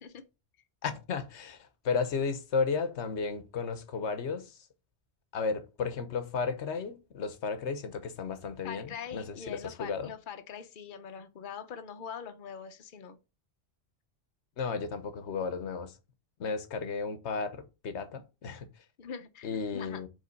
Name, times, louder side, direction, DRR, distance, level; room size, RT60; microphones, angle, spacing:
voice 1, 0.8-4.6 5.3-10.1 14.6-15.9 16.4-18.7 19.4-20.1, left 5 dB, 85° left, 1.2 m, -34 dB
voice 2, 8.6-13.2 19.0-20.0, left 7 dB, 50° left, 0.9 m, -43 dB
5.4 x 3.7 x 5.2 m
omnidirectional pair, 1.1 m